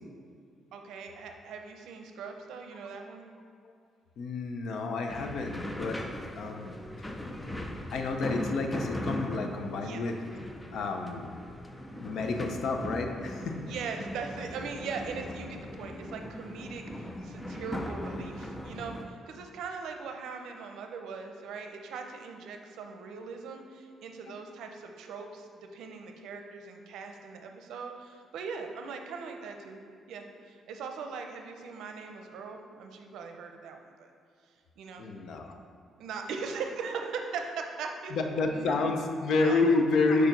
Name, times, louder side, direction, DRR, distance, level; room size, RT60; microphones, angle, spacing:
voice 1, 0.7-3.2 9.8-10.0 13.6-29.8 30.1-34.1 34.8-35.1 36.0-38.2 38.5-38.9 39.4-39.6, right 5 dB, 80° right, 4 dB, 0.6 m, -40 dB
voice 2, 4.2-6.0 6.4-6.8 7.9-10.2 10.7-11.3 11.9-13.6 15.9-16.0 24.3-24.4 35.0-35.5 38.1-40.3, left 3 dB, 60° left, 4 dB, 0.6 m, -29 dB
sound 1, 5.1-19.0, left 1 dB, 10° left, 0.4 m, -39 dB
4.8 x 4.5 x 5.2 m, 2.3 s
cardioid pair, 155°, 0 cm